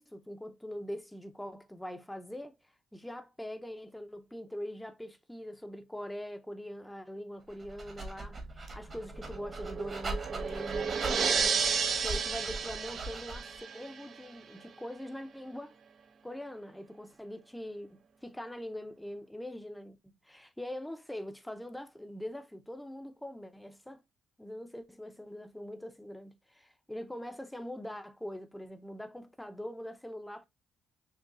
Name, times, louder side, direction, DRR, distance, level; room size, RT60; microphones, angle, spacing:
voice 1, 0.0-2.6 2.9-11.7 12.0-15.8 16.2-20.0 20.2-24.0 24.4-30.4, equal, 5° left, 0.6 m, -43 dB
Dog, 7.5-13.6, right 2 dB, 40° right, 1.2 m, -41 dB
sound 1, 9.1-14.3, right 6 dB, 55° right, 0.5 m, -32 dB
6.1 x 2.3 x 2.5 m
cardioid pair, 90°, 0 cm